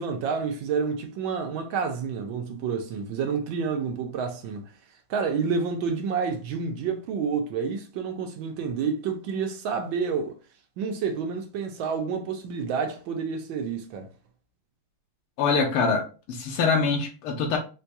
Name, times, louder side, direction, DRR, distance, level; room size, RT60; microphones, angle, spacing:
voice 1, 0.0-4.6 5.1-10.4 10.8-14.1, right 5 dB, 75° right, 1.3 m, -29 dB
voice 2, 15.4-17.6, left 4 dB, 90° left, 1.8 m, -24 dB
4.5 x 2.2 x 2.6 m
omnidirectional pair, 2.3 m